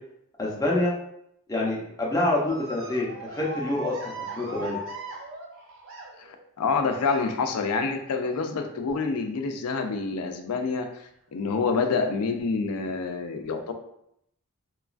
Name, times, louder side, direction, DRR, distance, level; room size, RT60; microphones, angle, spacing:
voice 1, 0.4-0.9 1.5-4.8, left 2 dB, 15° left, -4 dB, 0.6 m, -27 dB
sound 1, 2.5-6.4 7.0-7.5 8.6-8.9 9.4-9.5 10.7-10.8 11.7-11.8, right 2 dB, 60° right, 0.5 m, -39 dB
voice 2, 6.2-10.9 11.3-13.7, left 4 dB, 80° left, 6 dB, 0.4 m, -27 dB
2.9 x 2.3 x 2.4 m, 0.75 s
head